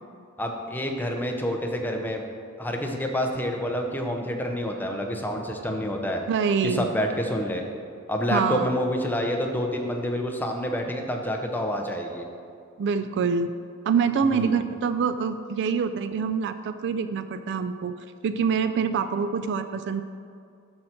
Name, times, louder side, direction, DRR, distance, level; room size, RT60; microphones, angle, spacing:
voice 1, 0.4-2.2 2.6-6.2 6.6-7.7 8.1-12.2 14.3-14.6, equal, 10° left, 2 dB, 0.7 m, -28 dB
voice 2, 6.3-6.9 8.3-8.7 12.8-13.5 13.8-17.9 18.2-20.0, right 6 dB, 55° right, 11 dB, 0.3 m, -25 dB
12.5 x 4.5 x 4.4 m, 2.4 s
head